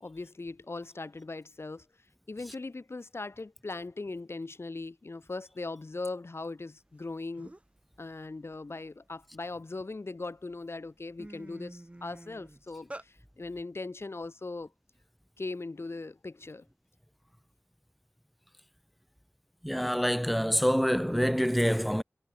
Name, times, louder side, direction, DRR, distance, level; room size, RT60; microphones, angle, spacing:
voice 1, 0.0-1.9 2.3-7.5 8.0-14.7 15.4-16.6, left 3 dB, 55° left, 1.2 m, -39 dB
sound 1, 7.0-7.1 7.4-7.8 8.3-9.8 10.4-10.6 10.9-13.1, right 1 dB, 25° right, 2.4 m, -47 dB
voice 2, 19.6-22.0, equal, ahead, 1.1 m, -26 dB
wide cardioid pair, 60°, 5 cm